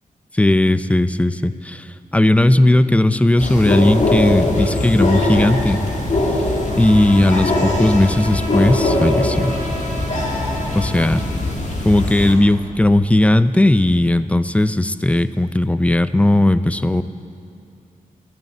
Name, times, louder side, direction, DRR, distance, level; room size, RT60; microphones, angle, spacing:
voice 1, 0.3-5.8 6.8-9.5 10.8-11.3 11.8-17.0, left 1 dB, 10° left, 14 dB, 0.4 m, -16 dB
sound 1, 3.4-12.3, left 1 dB, 55° left, 2.3 m, -21 dB
Bowed string instrument, 6.4-11.6, equal, 70° left, 4.7 m, -33 dB
14.0 x 10.5 x 7.8 m, 2.5 s
cardioid pair, 85°, 15 cm